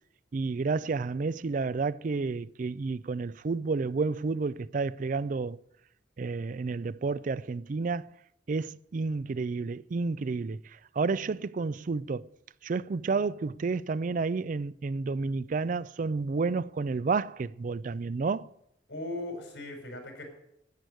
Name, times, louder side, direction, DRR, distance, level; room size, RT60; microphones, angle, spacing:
voice 1, 0.3-5.6 6.2-8.1 8.5-10.6 11.0-12.3 12.6-18.5, right 4 dB, 45° right, 0.4 m, -30 dB
voice 2, 18.9-20.2, left 1 dB, 85° left, 4.9 m, -38 dB
10.5 x 9.6 x 7.8 m
head